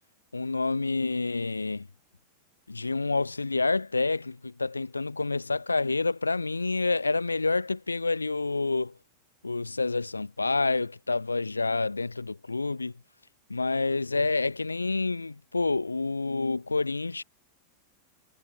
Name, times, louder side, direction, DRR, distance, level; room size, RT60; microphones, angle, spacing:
voice 1, 0.3-1.9 2.7-8.9 9.4-12.9 13.5-17.2, left 3 dB, 80° left, 0.8 m, -28 dB
figure-of-eight pair, 90°, 0 cm